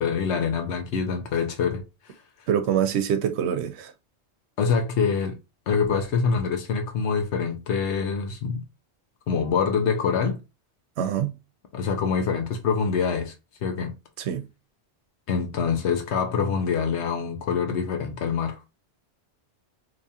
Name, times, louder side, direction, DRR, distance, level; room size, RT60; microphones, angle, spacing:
voice 1, 0.0-2.1 4.6-5.4 5.7-8.6 9.3-10.4 11.7-13.3 13.6-13.9 15.3-18.6, left 6 dB, 90° left, 1.0 m, -25 dB
voice 2, 2.5-3.9 11.0-11.3 14.2-14.5, right 9 dB, 75° right, 0.8 m, -25 dB
3.0 x 2.8 x 3.5 m
omnidirectional pair, 1.1 m